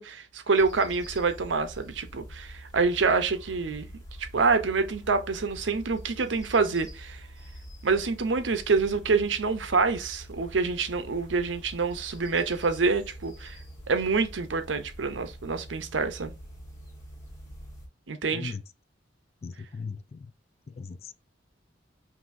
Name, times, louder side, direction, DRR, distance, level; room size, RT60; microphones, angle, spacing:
voice 1, 0.0-3.9 4.2-7.3 7.8-13.6 13.9-16.3 18.1-18.5, right 4 dB, 85° right, 0.7 m, -26 dB
sound 1, 0.5-17.9, equal, 15° left, 1.5 m, -45 dB
voice 2, 18.3-18.6 19.4-20.3 20.7-21.1, left 4 dB, 35° left, 0.3 m, -38 dB
5.6 x 2.7 x 2.6 m
head